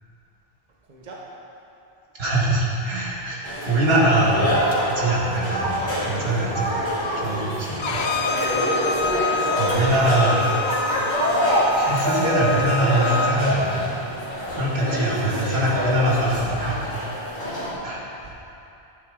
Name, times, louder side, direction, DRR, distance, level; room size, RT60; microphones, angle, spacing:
voice 1, 0.8-1.3 6.9-7.4 7.7-8.8 15.0-15.2 18.2-18.3, right 2 dB, 45° right, -4 dB, 1.1 m, -42 dB
voice 2, 2.2-4.6 4.9-6.7 7.1-8.0 9.6-10.5 11.7-14.0 14.5-16.8 17.8-18.0, right 1 dB, 75° right, -5 dB, 2.0 m, -23 dB
sound 1, 3.4-17.7, equal, 45° left, 2.5 m, -25 dB
Bowed string instrument, 7.8-13.4, left 5 dB, 75° left, 0.8 m, -28 dB
12.0 x 9.3 x 3.7 m, 2.8 s
omnidirectional pair, 1.1 m